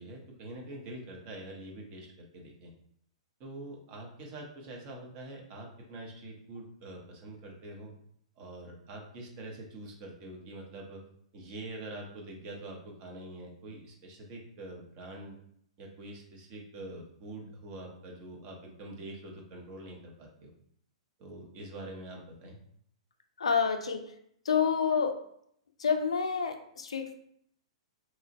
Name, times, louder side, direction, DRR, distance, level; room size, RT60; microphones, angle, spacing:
voice 1, 0.0-2.7 3.4-7.9 8.4-11.0 11.3-15.4 15.8-20.5 21.2-22.6, right 1 dB, 35° right, 0 dB, 0.7 m, -45 dB
voice 2, 23.4-24.0 24.5-25.2 25.8-27.1, left 6 dB, 70° left, 6 dB, 0.3 m, -28 dB
2.9 x 2.4 x 2.5 m, 0.68 s
figure-of-eight pair, 110°, 3 cm